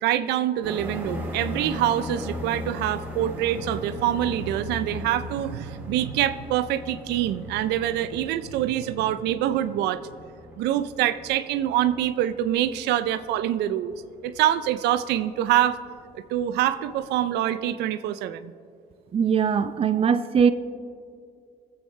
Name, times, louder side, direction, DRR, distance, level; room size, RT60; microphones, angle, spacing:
voice 1, 0.0-10.0 10.6-13.9 14.2-15.8 16.3-18.5, right 12 dB, 80° right, 11 dB, 0.5 m, -25 dB
sound 1, 0.6-17.1, left 1 dB, 10° right, 3.0 m, -39 dB
voice 2, 19.1-20.5, right 7 dB, 35° right, 10 dB, 0.6 m, -21 dB
23.5 x 8.1 x 3.2 m, 2.4 s
cardioid pair, 110°, 17 cm